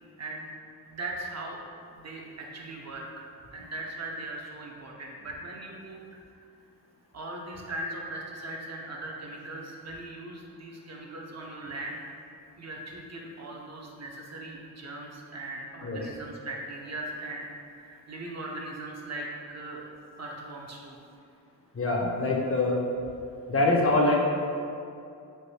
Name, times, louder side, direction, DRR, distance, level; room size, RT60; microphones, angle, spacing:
voice 1, 0.9-1.6 1.9-6.0 7.1-12.1 12.6-19.8 20.2-21.0, right 2 dB, 40° right, -1 dB, 0.5 m, -39 dB
voice 2, 21.7-22.8 23.5-24.2, left 2 dB, 35° left, -2 dB, 0.6 m, -24 dB
3.3 x 2.6 x 2.7 m, 2.5 s
cardioid pair, 55°, 41 cm